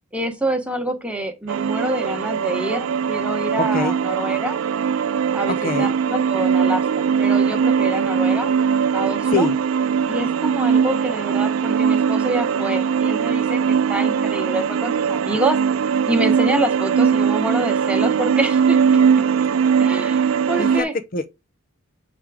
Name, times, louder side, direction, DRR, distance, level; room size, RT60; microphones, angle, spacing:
voice 1, 0.1-4.6 5.3-8.5 8.9-9.5 10.1-15.6 16.1-18.8 19.8-20.9, right 1 dB, 5° right, 1.1 m, -26 dB
sound 1, 1.5-20.8, right 7 dB, 75° right, 0.4 m, -20 dB
voice 2, 3.6-4.0 5.5-5.9 9.3-9.5 20.6-21.4, left 3 dB, 45° left, 0.6 m, -24 dB
7.1 x 3.5 x 4.9 m
head